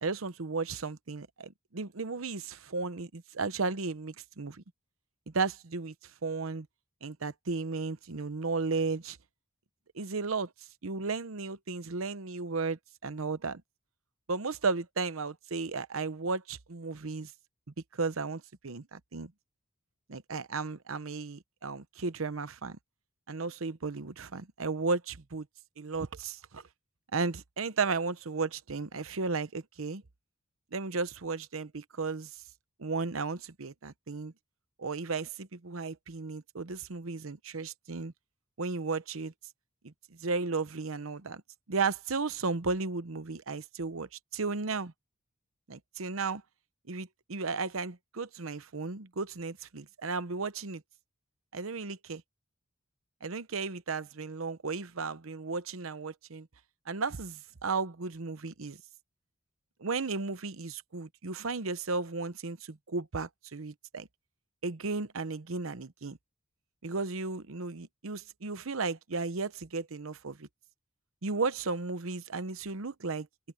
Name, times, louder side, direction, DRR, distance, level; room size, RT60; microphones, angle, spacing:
voice 1, 0.0-4.6 5.3-5.9 6.2-6.7 7.0-9.2 9.9-10.5 10.8-13.6 14.3-17.3 17.9-19.3 20.1-22.8 23.3-25.5 25.8-26.6 27.1-30.0 30.7-32.3 32.8-34.3 34.8-38.1 38.6-39.3 39.8-39.9 40.2-41.4 41.7-44.9 45.7-46.4 46.9-50.8 51.5-52.2 53.2-56.5 56.9-58.8 59.8-64.1 64.6-66.2 66.8-70.5 71.2-73.3, right 4 dB, 80° right, 0.9 m, -34 dB
head